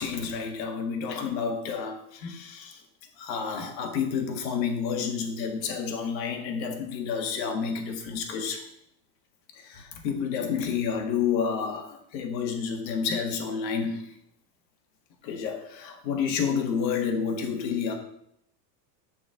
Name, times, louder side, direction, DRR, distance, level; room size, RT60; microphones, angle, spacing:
voice 1, 0.0-2.8 3.2-8.7 9.6-14.1 15.2-17.9, left 6 dB, 85° left, 4 dB, 1.7 m, -30 dB
7.2 x 4.3 x 6.2 m, 0.73 s
supercardioid pair, 120°, 50 cm